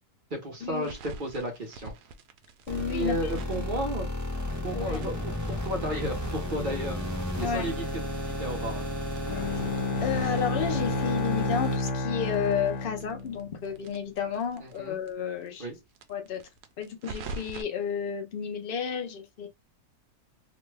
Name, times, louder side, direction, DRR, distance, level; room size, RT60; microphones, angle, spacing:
voice 1, 0.3-1.9 2.9-4.1 4.6-8.0 8.4-8.8 14.6-15.0 15.6-15.8, right 1 dB, 40° right, 0.9 m, -33 dB
sound 1, 0.7-4.6 4.9-7.9 8.2-8.3 8.6-8.7 9.1-11.4 11.7-14.8 15.1-15.2 15.4-15.5 15.9-17.6, right 3 dB, 90° right, 1.1 m, -45 dB
voice 2, 2.7-3.4 4.7-5.1 7.4-7.8 10.0-15.7 16.1-16.4 16.8-19.5, left 7 dB, 65° left, 0.5 m, -32 dB
sound 2, 2.7-11.8, equal, 25° right, 0.4 m, -33 dB
Bowed string instrument, 9.3-13.7, left 3 dB, 85° left, 1.2 m, -30 dB
3.0 x 2.2 x 3.2 m
omnidirectional pair, 1.6 m